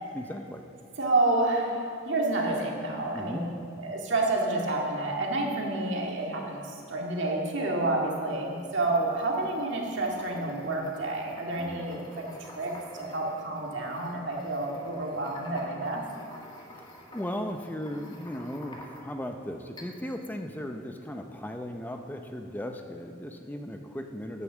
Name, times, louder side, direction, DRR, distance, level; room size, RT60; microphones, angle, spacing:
voice 1, 0.1-0.6 3.1-3.5 11.5-11.9 17.1-24.4, equal, 10° left, 5 dB, 0.6 m, -37 dB
voice 2, 1.0-3.4 3.8-16.0, right 2 dB, 70° right, -1 dB, 2.1 m, -29 dB
sound 1, 8.3-19.3 19.8-20.2, left 1 dB, 25° left, 1.7 m, -50 dB
9.5 x 9.5 x 7.3 m, 2.5 s
head